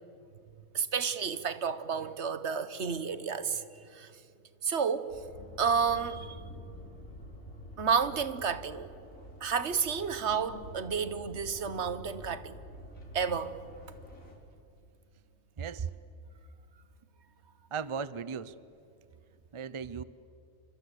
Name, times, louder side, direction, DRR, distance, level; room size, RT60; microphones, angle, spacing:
voice 1, 0.7-3.6 3.9-4.1 4.6-5.1 5.6-6.4 7.8-8.9 9.4-12.6 13.1-13.5, right 6 dB, 60° right, 1.4 m, -31 dB
sound 1, 5.1-14.3, equal, 85° left, 4.6 m, -48 dB
voice 2, 15.6-15.9 17.7-18.6 19.5-20.0, right 6 dB, 35° right, 0.5 m, -36 dB
29.5 x 25.0 x 8.1 m
omnidirectional pair, 1.4 m